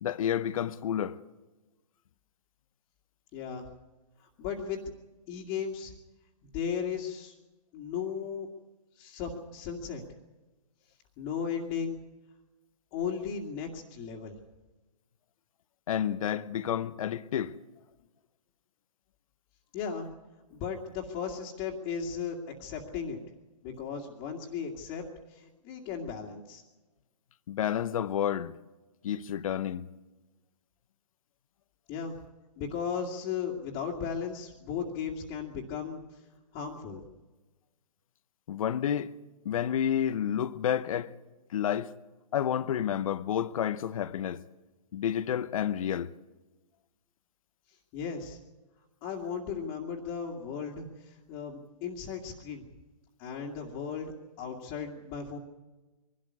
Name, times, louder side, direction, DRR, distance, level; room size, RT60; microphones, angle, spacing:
voice 1, 0.0-1.2 15.9-17.5 27.5-28.5 29.0-29.8 38.5-39.1 39.4-41.1 41.5-41.9 42.3-44.4 44.9-46.1, left 9 dB, 55° left, 0.8 m, -30 dB
voice 2, 3.3-3.6 4.2-4.8 5.3-5.9 6.5-7.3 7.7-8.5 9.0-10.0 11.2-12.0 12.9-14.3 19.7-20.1 20.5-23.2 23.6-26.6 31.9-32.2 32.6-36.2 36.5-37.0 47.9-48.4 49.0-52.6 53.2-55.4, left 7 dB, 30° left, 2.2 m, -36 dB
22.5 x 12.5 x 9.6 m
hypercardioid pair, 140°, 20 cm